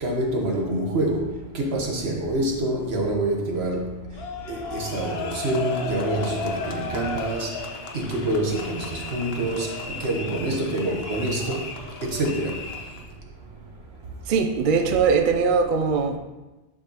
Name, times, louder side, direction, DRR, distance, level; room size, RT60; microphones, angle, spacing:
voice 1, 0.0-1.3 1.5-3.9 4.5-7.5 7.9-9.7 10.0-11.6 12.0-12.5, right 1 dB, 80° right, 0 dB, 1.5 m, -26 dB
sound 1, 4.2-13.1, left 4 dB, 75° left, 1.0 m, -34 dB
voice 2, 14.3-16.2, right 5 dB, 60° right, 5 dB, 0.7 m, -21 dB
11.0 x 5.0 x 2.9 m, 1.1 s
omnidirectional pair, 1.1 m